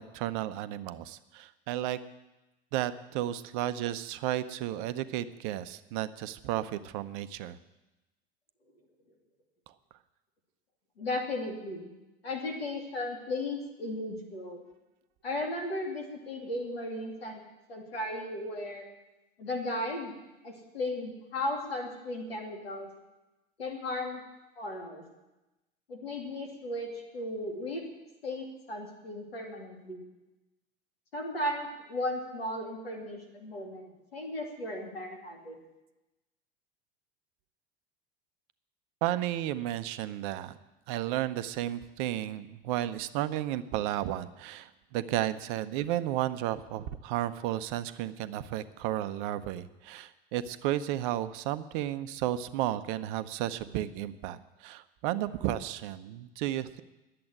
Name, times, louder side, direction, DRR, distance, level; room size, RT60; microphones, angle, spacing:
voice 1, 0.1-2.0 2.7-7.6 39.0-40.6 40.9-56.8, right 13 dB, 55° right, 13 dB, 0.8 m, -33 dB
voice 2, 11.0-11.9 12.2-14.6 15.2-17.4 17.7-18.9 19.4-20.2 20.4-22.9 23.6-24.2 24.6-25.0 25.9-27.8 28.2-30.0 31.1-35.6, left 1 dB, 85° left, 1 dB, 2.7 m, -36 dB
10.5 x 7.7 x 9.5 m, 1.0 s
hypercardioid pair, 80°, 30 cm